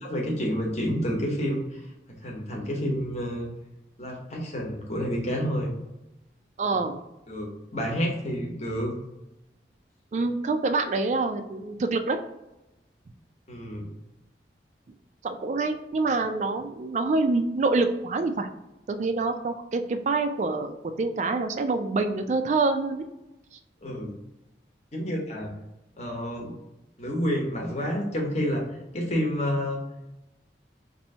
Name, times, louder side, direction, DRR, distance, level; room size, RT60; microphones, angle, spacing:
voice 1, 0.0-1.8 2.2-3.5 4.0-5.7 7.3-8.9 13.5-13.8 23.8-24.1 24.9-25.5 26.0-26.5 27.0-28.6 28.9-29.8, equal, 40° left, -1 dB, 0.9 m, -29 dB
voice 2, 6.6-7.0 10.1-12.2 15.2-18.5 18.9-23.0 23.5-23.6, right 3 dB, 40° right, 7 dB, 0.3 m, -26 dB
2.8 x 2.6 x 4.2 m, 0.95 s
head